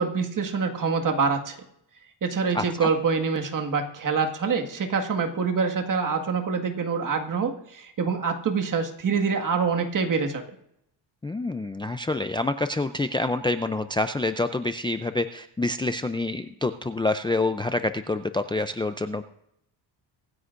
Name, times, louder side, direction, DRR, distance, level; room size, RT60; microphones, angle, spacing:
voice 1, 0.0-1.6 2.2-10.4, right 5 dB, 45° right, 4 dB, 1.8 m, -25 dB
voice 2, 2.5-2.9 11.2-19.2, left 2 dB, 10° left, 9 dB, 0.4 m, -27 dB
24.5 x 9.7 x 2.5 m, 0.77 s
cardioid pair, 125°, 43 cm